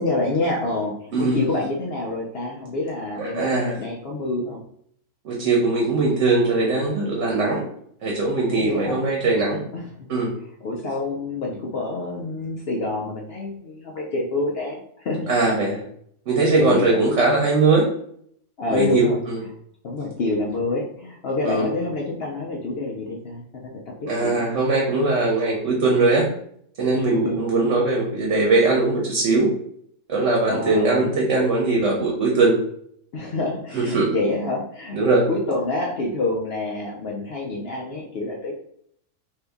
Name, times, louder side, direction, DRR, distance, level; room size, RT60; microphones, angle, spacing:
voice 1, 0.0-4.6 8.5-9.0 9.7-10.1 10.6-15.3 16.6-17.0 18.6-19.2 19.8-23.7 24.0-24.5 26.9-27.4 30.4-31.1 33.1-35.0 35.3-38.5, left 2 dB, 60° left, -2 dB, 0.6 m, -27 dB
voice 2, 3.2-3.8 5.2-7.6 8.0-9.6 10.1-10.3 15.3-15.8 16.3-17.8 18.7-19.4 21.4-21.6 24.1-26.3 26.8-29.5 30.1-32.5 33.7-34.2 34.9-35.2, right 3 dB, 55° right, -2 dB, 1.0 m, -20 dB
2.7 x 2.7 x 3.4 m, 0.66 s
omnidirectional pair, 1.6 m